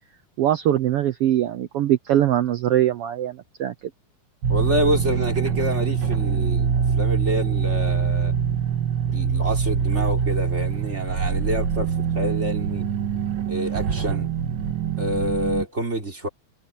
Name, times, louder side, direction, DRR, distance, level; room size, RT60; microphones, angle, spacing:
voice 1, 0.4-3.7, right 12 dB, 80° right, 1.3 m, -22 dB
sound 1, 4.4-15.6, right 7 dB, 50° right, 1.9 m, -24 dB
voice 2, 4.5-8.3 9.1-12.9 13.5-14.3 15.0-16.3, equal, 20° right, 3.9 m, -27 dB
omnidirectional pair, 3.5 m